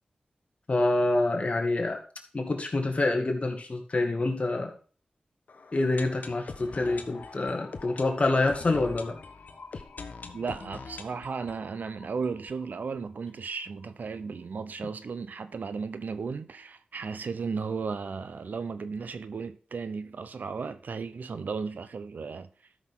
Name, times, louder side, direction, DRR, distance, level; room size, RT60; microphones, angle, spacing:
voice 1, 0.7-2.0 2.3-4.7 5.7-9.2, left 2 dB, 45° left, 2.3 m, -26 dB
sound 1, 5.5-13.2 13.5-13.6 13.8-13.9 14.4-14.5, left 4 dB, 75° left, 1.1 m, -44 dB
voice 2, 10.3-22.5, right 5 dB, 80° right, 0.8 m, -35 dB
12.5 x 6.2 x 3.7 m
cardioid pair, 60°, 3 cm